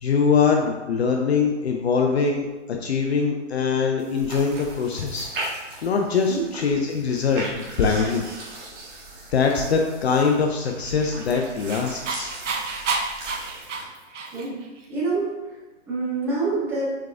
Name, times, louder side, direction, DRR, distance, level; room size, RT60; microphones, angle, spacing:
voice 1, 0.0-5.3 5.6-8.2 9.3-12.3, left 5 dB, 60° left, 2 dB, 0.6 m, -23 dB
sound 1, 4.0-13.8, right 2 dB, 45° right, 1.3 m, -38 dB
Dog, 10.8-14.7, right 4 dB, 75° right, 0.8 m, -30 dB
voice 2, 14.9-15.6 15.9-17.0, right 3 dB, 5° right, -6 dB, 0.6 m, -26 dB
4.7 x 4.6 x 2.4 m, 1.2 s
hypercardioid pair, 140°, 37 cm